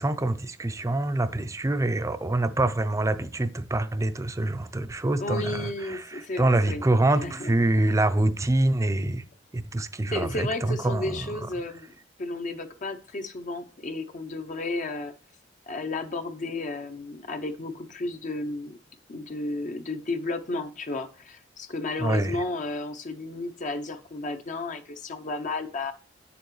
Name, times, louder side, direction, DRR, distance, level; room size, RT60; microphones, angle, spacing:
voice 1, 0.0-9.2 9.5-11.4 22.0-22.4, right 2 dB, 15° right, 0.5 m, -25 dB
voice 2, 5.2-7.8 10.1-11.9 12.2-15.1 15.7-18.8 19.1-25.9, left 2 dB, 45° left, 0.6 m, -33 dB
9.0 x 6.9 x 3.1 m
head